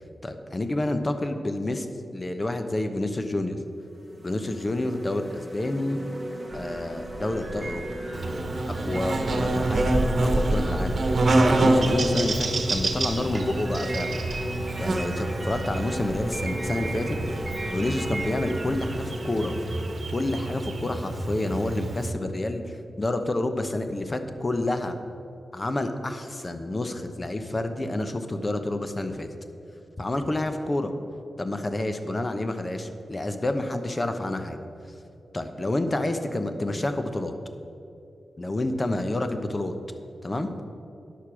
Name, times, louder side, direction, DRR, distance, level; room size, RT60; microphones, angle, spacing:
voice 1, 0.2-1.9 2.1-3.6 4.2-6.0 6.5-7.8 8.8-10.0 10.3-11.0 11.4-14.2 14.8-17.2 17.7-19.6 20.1-25.0 25.5-29.3 30.0-30.9 31.4-34.6 35.3-37.3 38.4-39.7 40.2-40.7, left 2 dB, 30° left, 8 dB, 0.9 m, -29 dB
sound 1, 3.1-3.2 3.8-20.0, equal, 10° right, 1.4 m, -37 dB
sound 2, 6.5-19.0, right 2 dB, 35° right, 1.3 m, -35 dB
Buzz, 8.1-22.1, right 2 dB, 60° right, 1.1 m, -27 dB
10.0 x 6.6 x 6.1 m, 2.7 s
cardioid pair, 60°, 0 cm